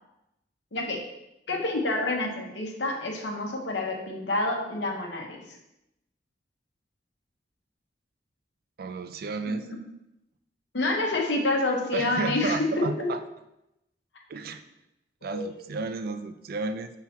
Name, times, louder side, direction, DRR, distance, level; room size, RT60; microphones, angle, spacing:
voice 1, 1.5-5.4 9.5-9.6 10.7-13.1 15.2-15.6, left 2 dB, 85° left, 0 dB, 1.2 m, -28 dB
voice 2, 8.8-9.7 11.9-13.2 14.3-14.6 15.2-16.9, right 3 dB, 55° right, 10 dB, 0.4 m, -32 dB
5.9 x 3.8 x 4.4 m, 0.87 s
head